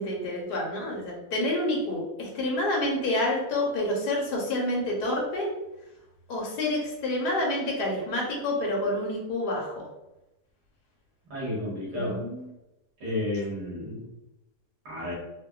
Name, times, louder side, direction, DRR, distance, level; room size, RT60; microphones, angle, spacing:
voice 1, 0.0-5.5 6.3-9.9 11.9-12.5, left 1 dB, 80° left, -1 dB, 1.4 m, -28 dB
voice 2, 11.3-12.2 13.0-14.1 14.9-15.1, left 1 dB, 80° right, -6 dB, 2.0 m, -31 dB
4.4 x 2.1 x 2.3 m, 0.96 s
omnidirectional pair, 1.7 m